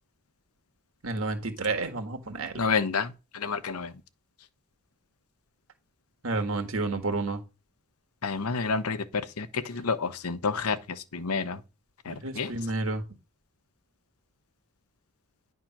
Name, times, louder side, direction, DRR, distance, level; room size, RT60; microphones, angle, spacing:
voice 1, 1.0-2.6 6.2-7.4 12.1-13.0, right 3 dB, 70° right, 1.6 m, -30 dB
voice 2, 2.6-3.9 8.2-9.0 9.4-10.8 11.1-11.6 12.1-12.5, left 5 dB, 85° left, 0.8 m, -29 dB
10.0 x 3.6 x 5.9 m
head